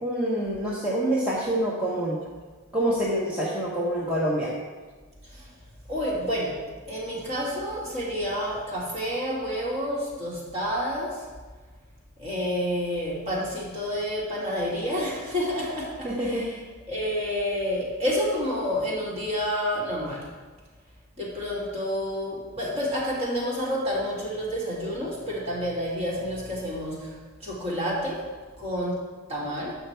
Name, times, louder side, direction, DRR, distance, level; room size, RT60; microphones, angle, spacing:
voice 1, 0.0-2.2 2.7-4.5 16.0-16.4, right 1 dB, 5° right, -7 dB, 1.0 m, -26 dB
voice 2, 5.9-6.6 6.9-11.2 12.2-16.5 16.9-20.2 21.2-27.2 27.4-28.2 28.6-29.0 29.3-29.8, equal, 30° right, -6 dB, 2.4 m, -29 dB
8.0 x 5.7 x 4.5 m, 1.4 s
head